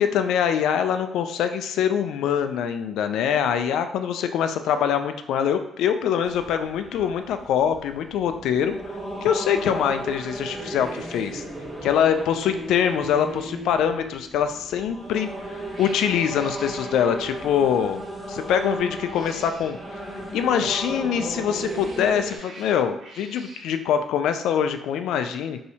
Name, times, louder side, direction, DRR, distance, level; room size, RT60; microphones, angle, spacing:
voice 1, 0.0-8.8 9.2-11.4 11.8-15.3 15.8-19.8 20.3-25.6, left 8 dB, 85° left, 8 dB, 0.3 m, -24 dB
sound 1, 6.2-22.4, right 1 dB, 20° right, 1.0 m, -35 dB
Cat, 15.0-15.3 15.7-17.7 18.8-19.9 21.2-23.8, right 2 dB, 75° right, 1.4 m, -47 dB
3.1 x 2.7 x 2.8 m, 0.80 s
cardioid pair, 90°, 0 cm